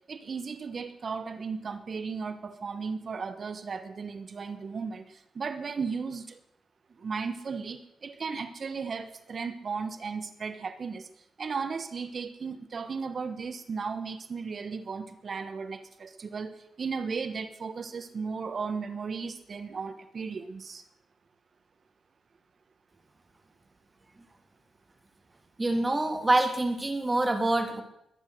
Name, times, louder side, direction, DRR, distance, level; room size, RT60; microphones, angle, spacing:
voice 1, 0.0-6.4 7.0-20.8, right 5 dB, 50° right, 11 dB, 1.2 m, -35 dB
voice 2, 25.6-27.8, right 2 dB, 20° right, 5 dB, 3.2 m, -26 dB
22.0 x 9.8 x 6.6 m, 0.80 s
cardioid pair, 90°, 0 cm